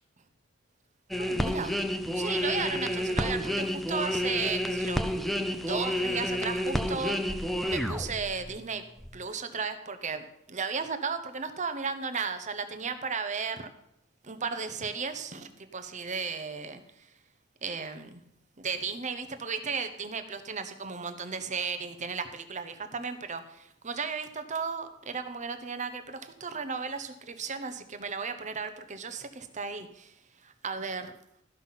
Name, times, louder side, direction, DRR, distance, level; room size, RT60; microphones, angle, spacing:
sound 1, 1.1-8.5 9.0-9.1, equal, ahead, 0.6 m, -30 dB
voice 1, 1.2-1.8 2.1-5.2 5.5-8.8 9.1-13.7 14.2-17.1 17.6-18.2 18.6-31.2, right 5 dB, 35° right, 9 dB, 0.9 m, -35 dB
13.0 x 5.8 x 5.7 m, 0.75 s
head